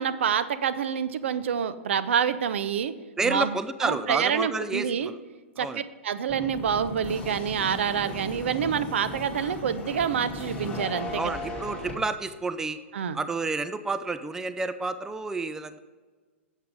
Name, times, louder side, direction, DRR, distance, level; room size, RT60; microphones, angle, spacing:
voice 1, 0.0-2.9 3.2-3.5 3.8-5.1 5.6-11.2 12.9-13.2, right 8 dB, 65° right, 13 dB, 0.6 m, -27 dB
voice 2, 3.2-5.2 5.6-5.8 11.1-12.8 13.1-15.8, right 3 dB, 5° right, 12 dB, 0.4 m, -30 dB
sound 1, 6.3-11.9, left 2 dB, 15° left, 2.6 m, -36 dB
7.8 x 7.3 x 5.0 m, 1.4 s
hypercardioid pair, 110°, 7 cm